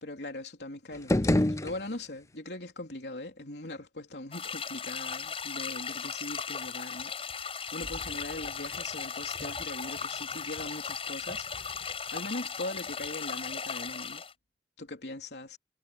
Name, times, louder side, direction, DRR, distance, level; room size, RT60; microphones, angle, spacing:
voice 1, 0.0-14.2 14.8-15.6, left 2 dB, 70° left, 3.5 m, -41 dB
sound 1, 0.9-2.4, left 1 dB, 15° left, 0.6 m, -28 dB
sound 2, 4.3-14.3, left 6 dB, 30° left, 7.7 m, -37 dB
sound 3, 7.8-13.2, equal, 80° right, 6.1 m, -52 dB
head